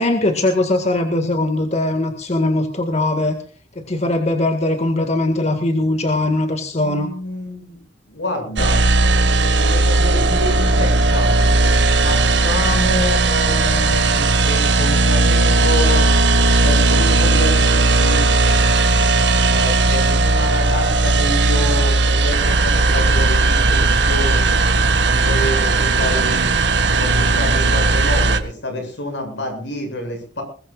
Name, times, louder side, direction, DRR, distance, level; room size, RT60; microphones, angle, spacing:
voice 1, 0.0-3.4 3.8-7.1, left 2 dB, 40° left, 5 dB, 1.9 m, -20 dB
voice 2, 6.8-7.8 8.1-8.8 9.6-11.3 12.0-16.1 16.6-18.3 19.4-24.6 25.0-26.5 27.0-30.4, left 1 dB, 75° left, 5 dB, 6.9 m, -27 dB
sound 1, 8.6-28.4, right 3 dB, 75° right, 1.7 m, -16 dB
21.5 x 21.0 x 2.4 m, 0.39 s
head